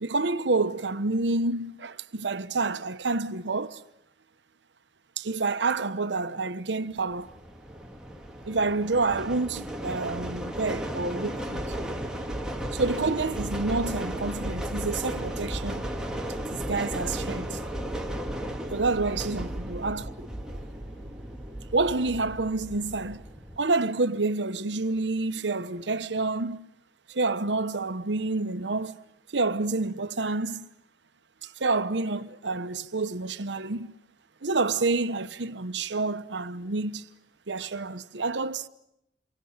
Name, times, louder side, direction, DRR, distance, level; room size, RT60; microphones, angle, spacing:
voice 1, 0.0-3.8 5.2-7.3 8.4-11.6 12.7-15.9 16.5-17.6 18.7-20.3 21.7-23.2 23.6-26.7 27.1-29.0 29.3-30.7 31.4-33.9 34.4-37.0 37.5-38.7, right 3 dB, 80° right, 1.0 m, -28 dB
sound 1, 7.1-23.6, right 1 dB, 5° right, 2.0 m, -35 dB
28.0 x 24.0 x 8.8 m
head